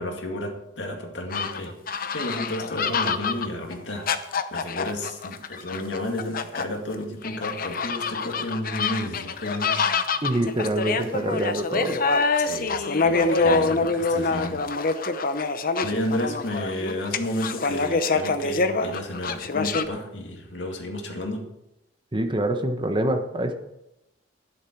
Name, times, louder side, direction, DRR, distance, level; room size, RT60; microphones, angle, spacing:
voice 1, 0.0-1.7 2.1-9.9 12.4-14.6 15.8-21.5, left 1 dB, 70° left, 3 dB, 2.3 m, -32 dB
sound 1, 1.3-6.6 7.2-19.9, left 4 dB, 50° left, 0.8 m, -25 dB
voice 2, 10.2-12.0 22.1-23.5, right 1 dB, 25° right, 6 dB, 1.1 m, -25 dB
12.5 x 11.0 x 4.6 m, 0.88 s
head